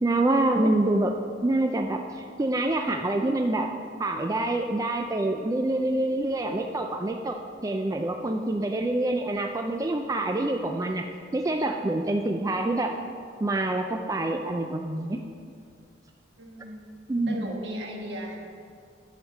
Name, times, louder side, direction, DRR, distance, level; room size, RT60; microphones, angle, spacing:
voice 1, 0.0-1.1 1.4-3.7 4.0-7.4 7.6-11.1 11.3-12.9 13.4-15.2 17.1-17.5, right 2 dB, 20° right, 4 dB, 0.3 m, -26 dB
voice 2, 16.4-16.8 17.3-18.4, equal, 65° right, 1 dB, 1.5 m, -37 dB
10.0 x 5.1 x 7.4 m, 2.3 s
head